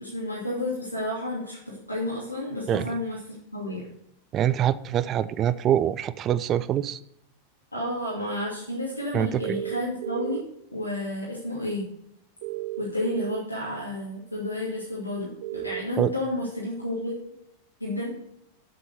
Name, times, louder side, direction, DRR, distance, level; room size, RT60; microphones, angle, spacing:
voice 1, 0.0-3.9 7.7-10.4 10.7-11.8 12.8-17.1 17.8-18.1, left 1 dB, 85° left, -5 dB, 2.6 m, -31 dB
voice 2, 4.3-7.0 9.1-9.6 16.0-16.1, right 10 dB, 30° right, 17 dB, 0.5 m, -24 dB
sound 1, 9.4-10.4 12.4-13.4 15.4-15.8, right 20 dB, 50° right, 0.8 m, -33 dB
7.9 x 7.8 x 6.6 m, 0.76 s
figure-of-eight pair, 90°, 0 cm